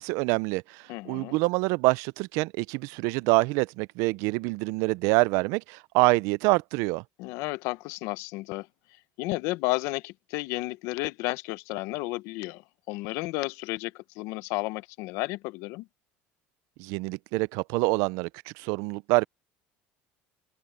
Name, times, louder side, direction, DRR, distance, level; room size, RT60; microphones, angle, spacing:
voice 1, 0.0-7.0 16.8-19.3, right 24 dB, 75° right, 0.5 m, -26 dB
voice 2, 0.9-1.4 7.2-8.7 9.2-15.9, left 21 dB, 70° left, 0.9 m, -32 dB
open air
supercardioid pair, 120°, 5 cm